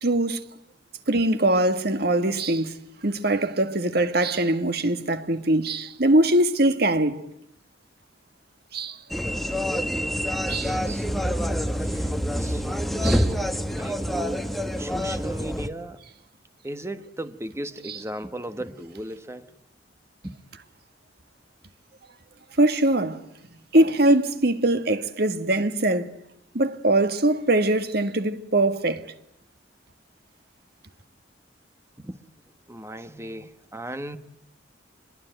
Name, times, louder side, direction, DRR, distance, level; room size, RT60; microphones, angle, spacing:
voice 1, 0.0-0.4 1.1-2.7 3.0-7.2 8.7-9.0 10.5-10.8 13.0-13.3 17.9-18.0 22.6-23.2 23.7-26.1 26.5-29.0, right 1 dB, 60° right, 1.7 m, -22 dB
sound 1, 9.1-15.7, equal, ahead, 1.5 m, -26 dB
voice 2, 10.0-11.1 11.8-12.1 12.4-13.3 13.7-16.0 16.6-19.5 20.2-20.3 32.0-32.2 32.7-34.2, right 1 dB, 15° right, 1.4 m, -37 dB
26.0 x 22.5 x 9.1 m
head